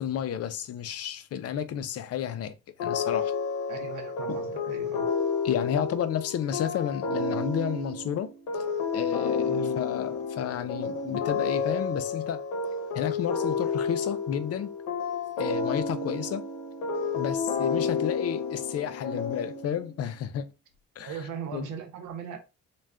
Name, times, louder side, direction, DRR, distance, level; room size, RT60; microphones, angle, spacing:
voice 1, 0.0-3.3 4.3-4.4 5.4-8.6 8.9-12.4 12.9-14.7 15.4-16.4 17.1-20.5 21.0-21.2 21.5-21.7, left 9 dB, 55° left, 0.5 m, -31 dB
sound 1, 2.8-20.0, left 5 dB, 80° left, 0.7 m, -30 dB
voice 2, 3.7-5.1 9.5-9.7 21.0-22.4, right 7 dB, 90° right, 0.8 m, -38 dB
2.4 x 2.3 x 3.3 m
cardioid pair, 90°, 30 cm